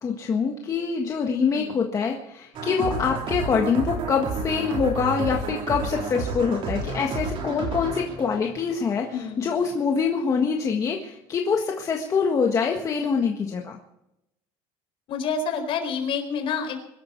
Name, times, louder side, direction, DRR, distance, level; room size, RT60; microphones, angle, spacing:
voice 1, 0.0-13.7, left 5 dB, 30° left, 1 dB, 1.6 m, -25 dB
voice 2, 1.5-1.9 9.1-9.6 15.1-16.8, left 5 dB, 50° left, 5 dB, 4.6 m, -28 dB
sound 1, 2.5-9.3, right 4 dB, 45° right, 4.3 m, -31 dB
23.0 x 13.0 x 4.6 m, 0.87 s
cardioid pair, 150°, 12 cm